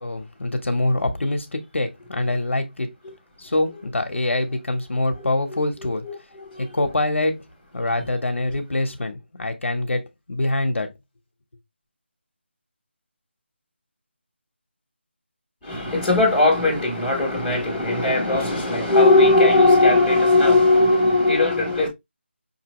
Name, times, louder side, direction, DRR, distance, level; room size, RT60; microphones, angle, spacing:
voice 1, 0.0-2.9 3.4-6.0 6.7-7.5 7.7-10.0 10.3-10.9, left 2 dB, 80° left, 1.1 m, -24 dB
voice 2, 5.2-6.8 15.6-21.9, left 2 dB, ahead, 1.3 m, -19 dB
5.9 x 2.8 x 3.0 m
figure-of-eight pair, 180°, 7 cm